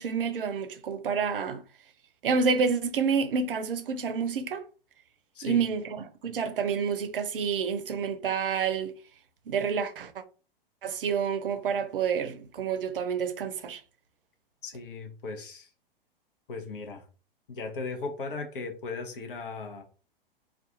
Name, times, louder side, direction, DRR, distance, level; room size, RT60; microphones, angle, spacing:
voice 1, 0.0-1.6 2.2-4.6 5.4-6.0 6.2-8.9 9.5-10.2 10.8-13.8, right 6 dB, 65° right, 0.5 m, -28 dB
voice 2, 14.6-15.7 16.5-17.0 17.5-19.8, left 3 dB, 65° left, 0.8 m, -37 dB
2.4 x 2.3 x 2.7 m
figure-of-eight pair, 100°, 29 cm